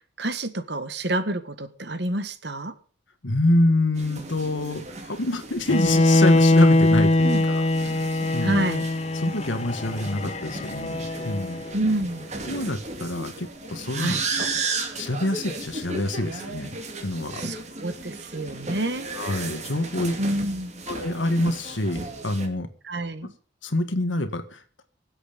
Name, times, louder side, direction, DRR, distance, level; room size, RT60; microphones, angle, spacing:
voice 1, 0.2-2.7 7.2-7.4 8.4-8.9 11.7-12.3 14.0-14.2 17.4-19.1 20.2-20.8 22.9-23.3, right 1 dB, 60° right, 1.6 m, -28 dB
voice 2, 3.2-7.6 8.3-8.7 9.1-11.6 12.5-14.5 15.0-17.5 19.1-20.2 20.9-22.7 23.6-24.8, left 1 dB, 80° left, 1.8 m, -26 dB
sound 1, 3.9-22.5, right 3 dB, 35° right, 2.4 m, -35 dB
Bowed string instrument, 5.7-11.7, left 2 dB, 35° left, 0.7 m, -22 dB
23.5 x 8.2 x 5.2 m
head